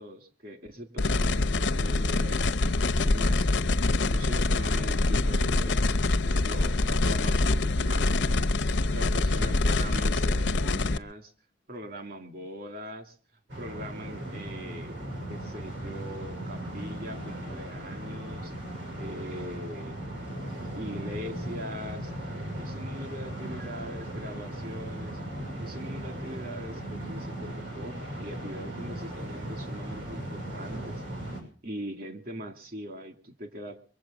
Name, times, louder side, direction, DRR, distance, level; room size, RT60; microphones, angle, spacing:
voice 1, 0.0-3.5 4.1-8.5 8.9-11.3 11.7-13.2 13.6-15.0 15.3-18.5 18.9-20.1 20.8-22.1 22.6-25.2 25.6-31.0 31.6-33.8, equal, 55° right, 9 dB, 2.2 m, -41 dB
sound 1, 1.0-11.0, left 2 dB, 70° left, 0.7 m, -25 dB
sound 2, 13.5-31.4, right 1 dB, 85° right, 6.3 m, -37 dB
23.0 x 7.9 x 7.2 m, 0.42 s
head